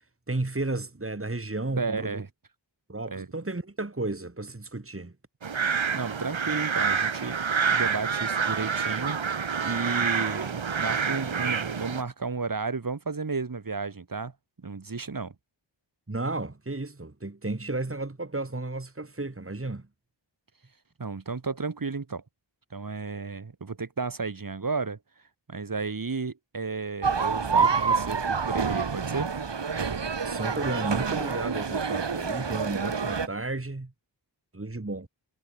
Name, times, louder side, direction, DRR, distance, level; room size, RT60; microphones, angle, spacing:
voice 1, 0.3-2.2 2.9-5.1 16.1-19.9 30.2-33.9 34.5-35.1, right 2 dB, 30° right, 3.2 m, -33 dB
voice 2, 1.8-2.3 3.1-3.3 5.9-9.2 9.6-14.3 14.6-15.3 21.0-22.2 22.7-25.0 25.5-29.3, right 4 dB, 45° right, 1.8 m, -33 dB
sound 1, 5.4-12.0, right 6 dB, 90° right, 1.9 m, -27 dB
sound 2, 27.0-33.3, right 5 dB, 65° right, 1.9 m, -27 dB
wide cardioid pair, 60°, 45 cm